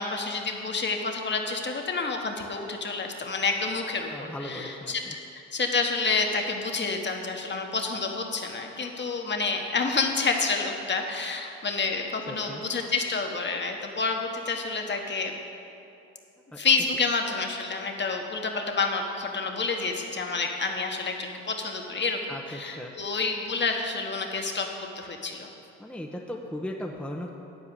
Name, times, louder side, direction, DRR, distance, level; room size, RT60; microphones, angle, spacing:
voice 1, 0.0-5.0 5.3-15.3 16.6-24.7 24.9-25.5, left 4 dB, 35° left, 3 dB, 1.3 m, -29 dB
voice 2, 4.1-5.2 12.3-12.6 16.5-16.6 22.3-22.9 25.8-27.3, left 1 dB, 5° left, 0 dB, 0.8 m, -37 dB
10.5 x 4.8 x 8.1 m, 2.8 s
supercardioid pair, 65°, 32 cm